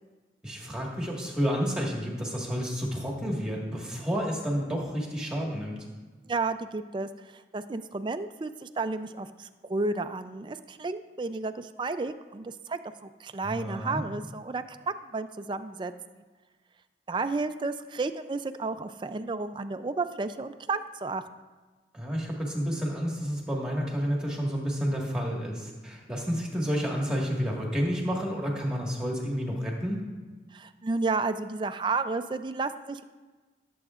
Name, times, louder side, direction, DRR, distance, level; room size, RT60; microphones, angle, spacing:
voice 1, 0.4-5.8 13.4-14.0 21.9-30.0, equal, 5° right, -2 dB, 1.6 m, -30 dB
voice 2, 6.3-16.2 17.1-21.2 30.5-33.0, right 3 dB, 25° right, 10 dB, 0.3 m, -32 dB
17.5 x 7.8 x 2.4 m, 1.3 s
head